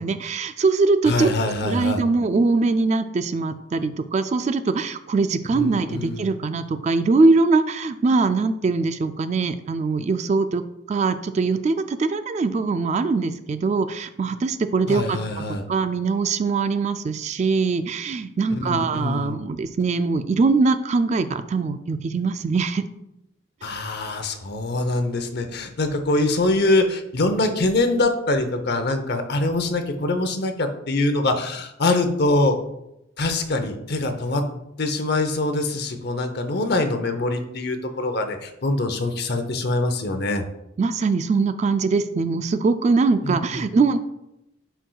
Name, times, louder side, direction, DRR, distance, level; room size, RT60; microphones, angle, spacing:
voice 1, 0.0-1.3 1.6-10.6 10.9-22.8 40.8-44.0, right 4 dB, 35° right, 11 dB, 0.3 m, -22 dB
voice 2, 1.1-2.0 5.5-6.3 14.9-15.6 18.5-19.4 23.6-32.5 33.2-34.4 34.8-40.4 43.2-43.7, left 2 dB, 55° left, 7 dB, 0.7 m, -24 dB
10.0 x 4.6 x 2.3 m, 0.84 s
head